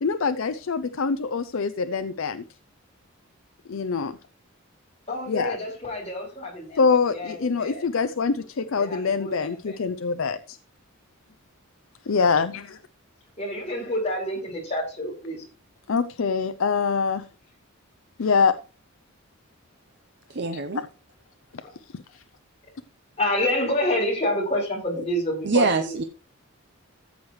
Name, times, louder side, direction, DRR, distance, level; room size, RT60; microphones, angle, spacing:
voice 1, 0.0-2.4 3.7-4.2 5.3-5.6 6.8-10.6 12.1-12.8 15.9-17.3 18.2-18.6 20.7-20.9 22.1-22.2, left 5 dB, 65° left, 12 dB, 0.5 m, -24 dB
voice 2, 5.1-7.9 8.8-9.8 13.4-15.4 21.6-21.7 23.2-26.0, left 1 dB, 30° left, -2 dB, 4.6 m, -28 dB
voice 3, 20.3-20.8 25.4-26.0, right 3 dB, 50° right, 8 dB, 0.7 m, -24 dB
14.0 x 7.9 x 3.2 m, 0.35 s
head